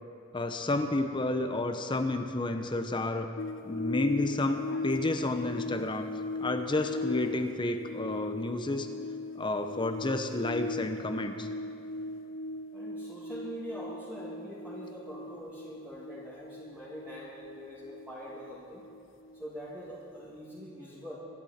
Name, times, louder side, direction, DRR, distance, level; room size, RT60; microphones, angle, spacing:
voice 1, 0.3-3.3 3.6-6.1 6.4-8.9 9.3-11.5, left 2 dB, 25° left, 6 dB, 0.8 m, -31 dB
sound 1, 3.4-19.9 20.2-20.3, left 3 dB, 75° left, 0.5 m, -39 dB
voice 2, 12.7-18.8 19.3-21.1, equal, 10° right, -9 dB, 2.4 m, -43 dB
24.5 x 11.5 x 4.3 m, 2.8 s
head